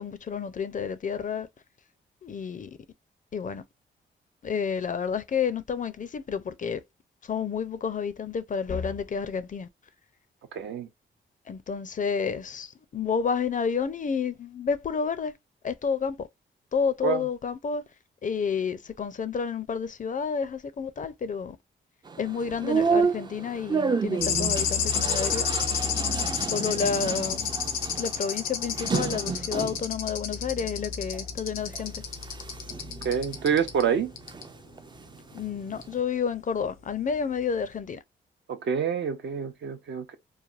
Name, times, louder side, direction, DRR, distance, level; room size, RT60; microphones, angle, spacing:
voice 1, 0.0-1.5 2.2-2.8 3.3-3.6 4.4-6.8 7.2-9.7 11.5-15.3 15.6-16.3 16.7-17.8 18.2-21.6 22.2-25.5 26.5-27.5 27.9-32.0 35.3-38.0, left 6 dB, 40° left, 0.5 m, -30 dB
voice 2, 10.5-10.9 17.0-17.2 26.7-26.8 33.0-34.1 38.5-40.2, right 7 dB, 65° right, 0.6 m, -27 dB
sound 1, 22.1-29.9 30.4-31.2 31.6-34.5 34.8-36.0, right 5 dB, 25° right, 0.4 m, -31 dB
sound 2, 24.2-33.9 34.2-34.4 35.8-35.9, left 7 dB, 90° left, 0.6 m, -31 dB
3.2 x 2.2 x 2.4 m
supercardioid pair, 55°, 20 cm